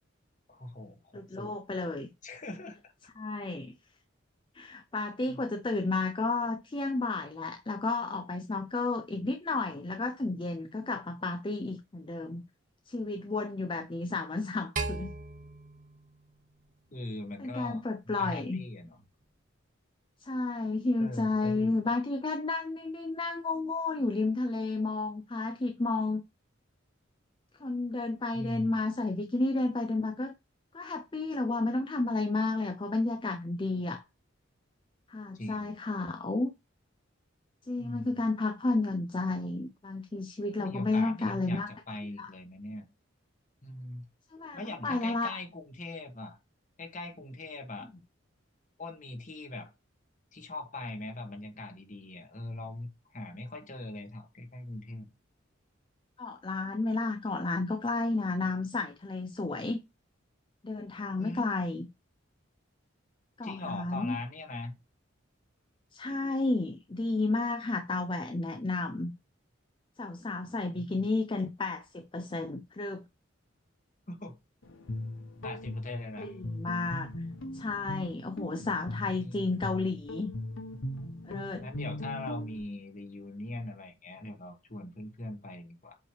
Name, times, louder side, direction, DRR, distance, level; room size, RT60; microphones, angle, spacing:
voice 1, 0.5-1.6 2.2-2.9 5.3-5.4 16.9-19.0 21.0-21.8 28.3-28.8 35.3-35.7 37.8-38.2 40.6-42.9 43.6-44.1 44.5-46.4 46.8-47.9 48.8-49.7 50.3-55.1 61.2-61.4 63.4-64.7 70.4-71.1 74.1-74.4 75.4-76.4 78.9-79.7 81.6-86.0, left 2 dB, 40° left, 1.4 m, -41 dB
voice 2, 1.1-2.1 3.2-3.7 4.5-12.4 12.9-15.1 17.4-18.6 20.2-26.2 27.6-30.3 30.7-34.0 35.1-36.5 37.7-41.7 42.2-42.3 44.3-45.4 56.2-59.8 60.6-61.9 63.4-64.2 65.9-69.1 70.0-73.0 76.2-77.1 77.5-80.3 81.3-81.7, left 3 dB, 25° left, 0.5 m, -32 dB
sound 1, 14.8-17.1, right 3 dB, 40° right, 1.0 m, -38 dB
Guitar, 74.6-82.6, left 1 dB, 80° left, 1.3 m, -39 dB
7.8 x 3.1 x 4.6 m
head